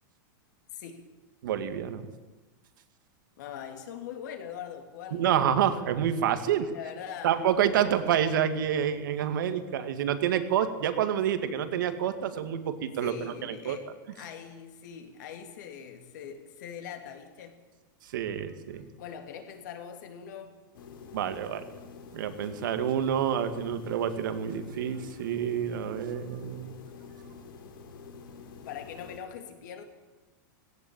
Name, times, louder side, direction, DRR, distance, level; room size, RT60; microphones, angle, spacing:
voice 1, 0.7-1.0 3.4-5.5 6.7-7.4 13.0-13.9 14.2-17.6 19.0-20.6 28.7-29.8, left 8 dB, 60° left, 5 dB, 3.4 m, -42 dB
voice 2, 1.4-2.1 5.1-6.7 7.2-13.8 18.0-18.8 21.1-21.6 22.1-26.7, right 9 dB, 70° right, 9 dB, 2.2 m, -28 dB
sound 1, 20.7-29.2, left 5 dB, 85° left, 4.1 m, -47 dB
18.5 x 17.0 x 8.9 m, 1.2 s
supercardioid pair, 170°, 11 cm